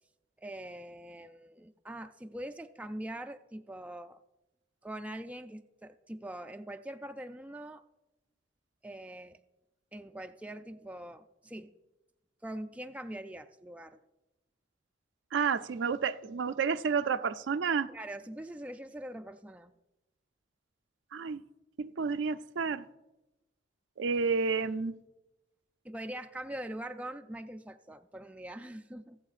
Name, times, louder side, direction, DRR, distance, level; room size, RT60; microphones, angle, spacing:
voice 1, 0.4-4.2 4.8-7.8 8.8-9.4 9.9-11.7 12.4-14.0 17.9-19.7 25.8-29.2, right 1 dB, 5° right, 7 dB, 0.3 m, -43 dB
voice 2, 15.3-17.9 21.1-21.4 21.8-22.9 24.0-24.9, right 5 dB, 70° right, 11 dB, 0.4 m, -30 dB
22.5 x 7.8 x 2.5 m, 1.0 s
head